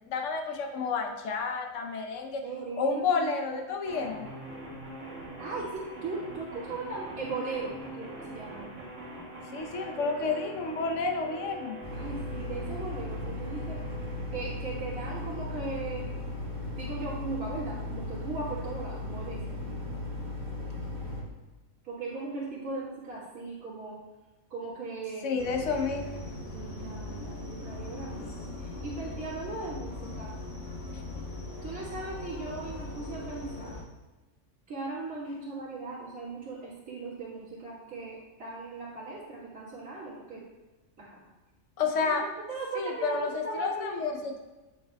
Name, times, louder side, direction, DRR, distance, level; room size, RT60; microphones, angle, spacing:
voice 1, 0.1-2.4 2.8-4.3 9.5-11.7 25.2-26.2 41.8-42.2 42.7-44.4, left 4 dB, 65° left, 3 dB, 1.1 m, -30 dB
voice 2, 2.4-3.7 5.4-8.7 11.9-13.8 14.3-16.1 16.7-19.6 21.8-24.0 24.5-25.4 26.5-30.3 31.6-33.8 34.7-40.4 41.0-41.2 42.0-42.1 42.5-44.1, right 3 dB, 85° right, -10 dB, 2.1 m, -38 dB
sound 1, 3.9-16.8, right 1 dB, 60° right, 2.0 m, -44 dB
sound 2, 11.8-21.2, left 2 dB, 40° right, 1.6 m, -36 dB
sound 3, 25.4-33.8, left 2 dB, 50° left, 1.5 m, -40 dB
8.4 x 6.8 x 2.3 m, 1.1 s
omnidirectional pair, 1.5 m